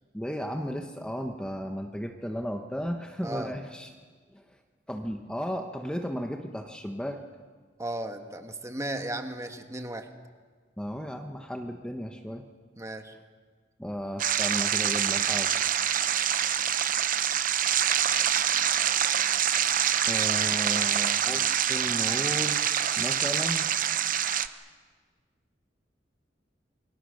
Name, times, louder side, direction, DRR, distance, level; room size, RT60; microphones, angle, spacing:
voice 1, 0.1-3.9 4.3-4.6 4.9-7.2 10.8-12.4 13.8-15.5 20.1-23.7, equal, 5° left, 4 dB, 1.1 m, -34 dB
voice 2, 3.2-3.5 7.8-10.1 12.8-13.1, right 1 dB, 15° right, 6 dB, 1.5 m, -35 dB
sound 1, 14.2-24.5, right 9 dB, 50° right, 0.8 m, -26 dB
28.5 x 22.5 x 6.5 m, 1.5 s
head